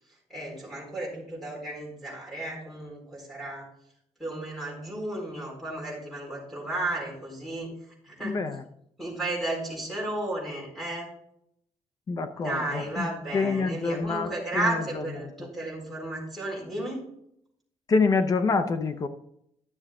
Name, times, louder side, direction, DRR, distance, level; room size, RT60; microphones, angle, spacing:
voice 1, 0.3-3.7 4.2-8.4 9.0-11.1 12.4-17.0, right 1 dB, ahead, -5 dB, 4.2 m, -33 dB
voice 2, 8.2-8.6 12.1-13.1 13.3-15.0 17.9-19.1, left 4 dB, 30° left, 9 dB, 0.6 m, -26 dB
12.0 x 6.9 x 3.7 m, 0.73 s
cardioid pair, 175°, 12 cm